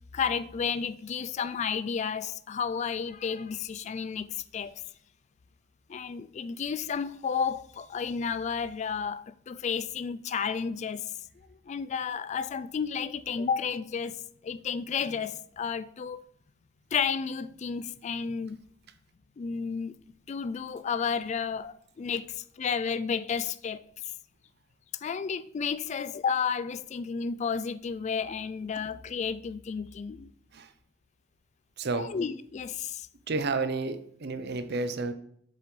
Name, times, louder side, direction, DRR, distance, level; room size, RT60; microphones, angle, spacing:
voice 1, 0.1-4.8 5.9-11.1 11.7-16.2 16.9-18.6 19.4-19.9 20.3-23.8 25.0-30.3 31.9-33.1, left 6 dB, 35° left, 0.3 m, -32 dB
voice 2, 31.8-32.1 33.3-35.1, right 3 dB, 60° right, 0.7 m, -31 dB
7.7 x 6.7 x 3.2 m
head